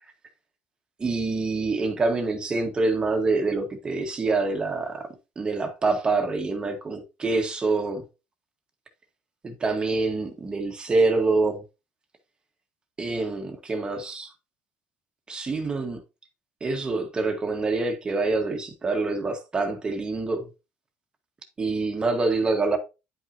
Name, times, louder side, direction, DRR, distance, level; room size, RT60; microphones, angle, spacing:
voice 1, 1.0-5.1 5.4-8.0 9.4-11.6 13.0-14.3 15.3-16.0 16.6-20.5 21.6-22.8, right 3 dB, 20° right, 1.3 m, -26 dB
9.9 x 5.6 x 2.7 m
cardioid pair, 140°, 4 cm